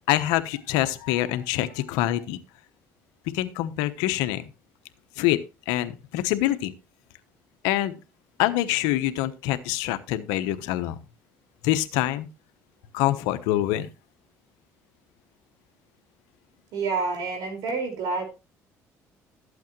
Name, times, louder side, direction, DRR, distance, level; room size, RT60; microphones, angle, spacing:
voice 1, 0.1-2.4 3.3-4.5 5.2-6.7 7.6-7.9 8.4-11.0 11.6-12.3 12.9-13.9, left 14 dB, 90° left, 11 dB, 1.0 m, -25 dB
voice 2, 16.7-18.2, right 4 dB, 75° right, 5 dB, 5.2 m, -28 dB
13.0 x 8.4 x 3.1 m, 0.28 s
supercardioid pair, 85°, 7 cm